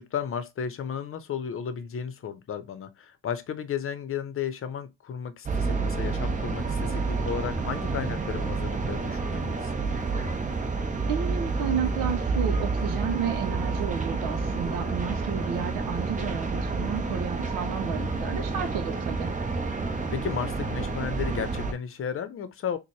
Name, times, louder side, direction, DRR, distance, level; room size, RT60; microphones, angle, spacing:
voice 1, 0.0-9.7 19.9-22.8, left 8 dB, 45° left, 0.7 m, -34 dB
sound 1, 5.5-21.7, right 3 dB, 25° right, 0.8 m, -29 dB
voice 2, 11.1-19.3, right 8 dB, 80° right, 0.7 m, -32 dB
4.2 x 2.2 x 3.1 m
supercardioid pair, 75°, 32 cm